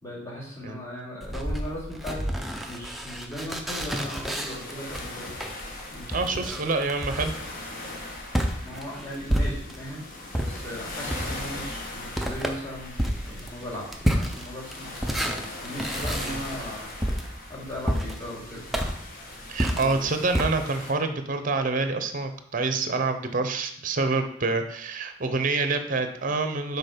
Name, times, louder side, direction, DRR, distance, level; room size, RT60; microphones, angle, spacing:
voice 1, 0.0-2.2 2.7-5.3 5.9-6.6 8.6-10.0 10.4-15.0 15.6-16.9 17.5-18.7 19.7-20.1, equal, 15° left, -6 dB, 2.5 m, -38 dB
sound 1, 1.2-9.9 10.3-20.5, equal, ahead, 0.6 m, -30 dB
sound 2, 3.9-20.9, left 2 dB, 45° left, 1.3 m, -40 dB
voice 2, 6.1-7.3 11.1-11.2 16.2-16.4 19.5-26.8, right 3 dB, 45° right, 8 dB, 0.7 m, -27 dB
6.7 x 4.1 x 5.1 m, 0.68 s
head